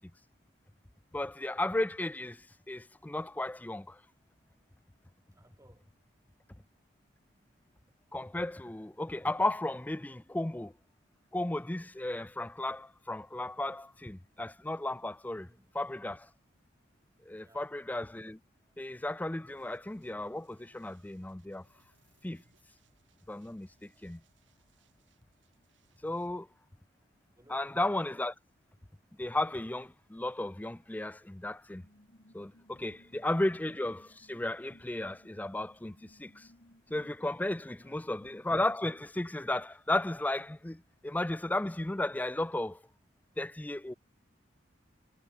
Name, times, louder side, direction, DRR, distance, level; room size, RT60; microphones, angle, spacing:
voice 1, 1.1-2.4 2.7-4.0 8.1-10.7 11.3-15.5 15.7-16.3 17.3-18.4 18.8-21.6 22.2-22.4 23.3-24.2 26.0-26.5 27.5-28.3 29.2-31.8 32.3-36.5 36.9-42.8 43.4-43.9, left 1 dB, 10° left, 0.4 m, -34 dB
voice 2, 5.3-6.0 15.3-15.8 17.3-17.8 25.9-26.5 27.3-27.8 32.9-33.3 37.7-38.2, right 1 dB, 15° right, 7.6 m, -63 dB
sound 1, 19.5-26.3, right 3 dB, 70° right, 5.9 m, -70 dB
sound 2, 31.7-39.1, left 1 dB, 50° left, 2.6 m, -62 dB
head